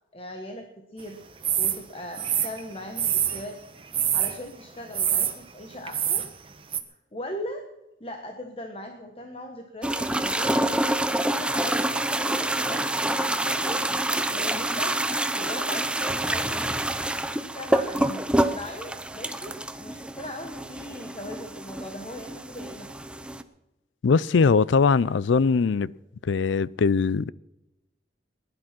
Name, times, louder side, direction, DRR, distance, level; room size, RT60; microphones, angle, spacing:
voice 1, 0.1-3.6 4.1-6.2 6.9-7.6 8.0-10.8 11.1-13.8 14.3-15.1 15.4-16.9 17.4-22.9, left 1 dB, 30° left, 1.3 m, -39 dB
sound 1, 1.4-1.8 2.2-3.4 3.9-4.4 4.9-5.3 5.9-6.3 6.7-6.8, right 10 dB, 30° right, 1.2 m, -25 dB
sound 2, 9.8-23.4, right 1 dB, 5° right, 0.6 m, -27 dB
voice 2, 24.0-25.9 26.2-27.3, left 5 dB, 85° left, 0.4 m, -21 dB
19.0 x 11.5 x 6.0 m
head